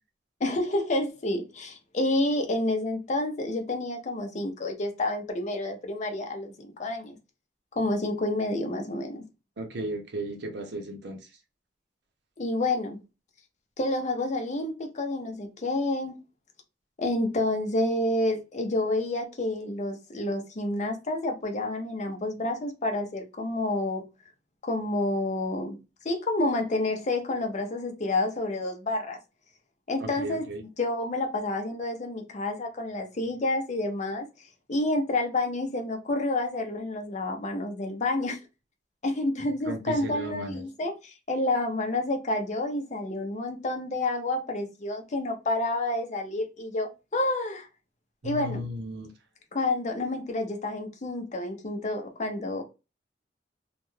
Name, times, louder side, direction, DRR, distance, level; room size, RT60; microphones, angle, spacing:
voice 1, 0.4-7.2 7.8-9.2 12.4-13.0 13.8-16.2 17.0-24.0 24.6-25.8 26.0-29.2 29.9-30.4 30.8-34.3 34.7-38.4 39.0-47.7 48.2-48.7 49.5-52.6, left 2 dB, 40° left, 0.6 m, -29 dB
voice 2, 9.6-11.2 30.0-30.6 39.6-40.6 48.2-49.1, right 1 dB, 65° right, 0.6 m, -35 dB
2.3 x 2.2 x 3.1 m
head